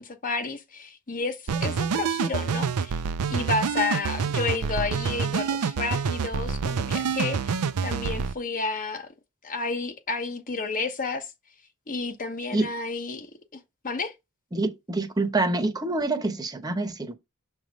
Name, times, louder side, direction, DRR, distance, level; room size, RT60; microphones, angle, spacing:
voice 1, 0.0-3.0 3.3-9.1 9.4-11.3 11.9-13.3 13.8-14.1, left 3 dB, 40° left, 1.1 m, -31 dB
sound 1, 1.5-8.3, right 5 dB, 90° right, 0.5 m, -27 dB
voice 2, 14.5-17.1, right 2 dB, 15° right, 0.9 m, -26 dB
7.0 x 3.3 x 5.2 m
head